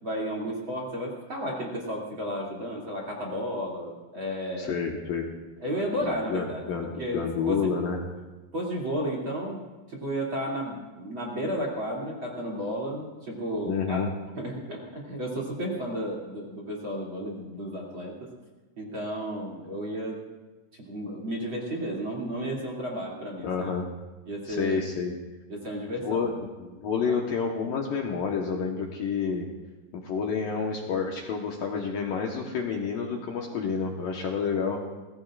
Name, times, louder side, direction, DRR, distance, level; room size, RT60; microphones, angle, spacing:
voice 1, 0.0-4.8 5.6-7.7 8.5-9.6 9.9-14.0 14.4-18.1 18.8-20.2 20.8-23.5 24.3-24.8 25.5-26.3 27.1-27.2, equal, 35° right, -3 dB, 2.9 m, -33 dB
voice 2, 4.6-5.3 5.9-8.0 13.7-14.1 23.4-23.9 24.5-25.1 26.0-29.5 29.9-34.8, left 6 dB, 65° left, 0 dB, 2.4 m, -29 dB
25.5 x 18.5 x 2.5 m, 1.2 s
omnidirectional pair, 5.1 m